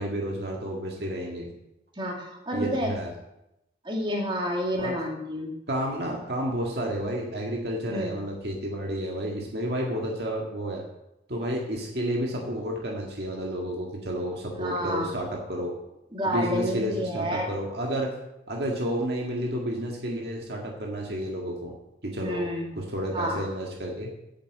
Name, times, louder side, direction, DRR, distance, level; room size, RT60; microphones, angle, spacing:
voice 1, 0.0-1.5 2.5-3.1 4.7-5.0 5.7-10.8 11.3-15.7 16.3-18.1 18.5-21.7 22.0-22.5 22.7-24.1, right 1 dB, 60° right, -1 dB, 1.9 m, -31 dB
voice 2, 2.0-2.9 3.8-5.5 7.9-8.1 14.6-15.1 16.1-17.5 22.2-22.7 23.1-23.4, equal, 25° right, 0 dB, 2.5 m, -29 dB
9.0 x 8.2 x 7.6 m, 0.87 s
head